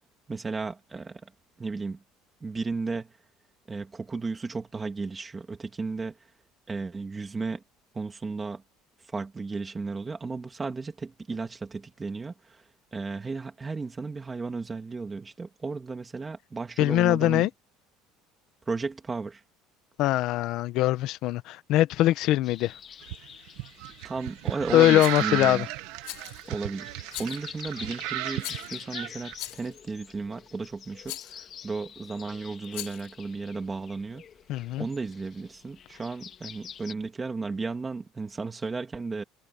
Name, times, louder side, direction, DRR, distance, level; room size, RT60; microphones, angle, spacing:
voice 1, 0.3-1.3 1.6-2.0 2.4-3.1 3.7-6.1 6.7-7.6 7.9-8.6 9.1-12.6 12.9-17.5 18.7-19.4 24.0-25.6 26.5-26.9 27.2-34.2 34.8-39.2, right 4 dB, 15° right, 2.6 m, -34 dB
voice 2, 16.8-17.5 20.0-22.8 24.7-25.7 34.5-34.9, left 15 dB, 55° left, 0.9 m, -22 dB
sound 1, 22.4-36.9, left 8 dB, 30° left, 2.2 m, -47 dB
sound 2, 23.0-29.3, right 19 dB, 75° right, 1.2 m, -34 dB
Rattle, 25.0-25.3 26.0-26.5 27.1-27.5 28.4-28.8 29.4-29.8 31.0-31.4 32.6-33.1, left 25 dB, 75° left, 5.2 m, -40 dB
cardioid pair, 160°, 0 cm